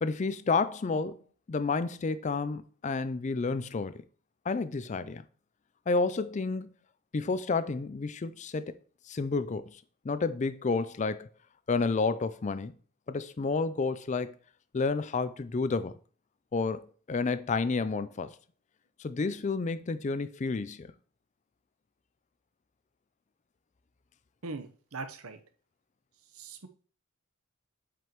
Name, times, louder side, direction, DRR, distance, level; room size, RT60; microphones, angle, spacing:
voice 1, 0.0-1.2 1.5-4.0 4.5-5.2 5.9-6.7 7.1-8.8 9.1-11.3 11.7-12.7 13.1-14.4 14.7-16.0 16.5-18.4 19.0-20.9, left 4 dB, 30° left, 0.4 m, -30 dB
voice 2, 24.4-25.4 26.3-26.7, right 3 dB, 70° right, 0.9 m, -40 dB
7.7 x 5.2 x 3.0 m
head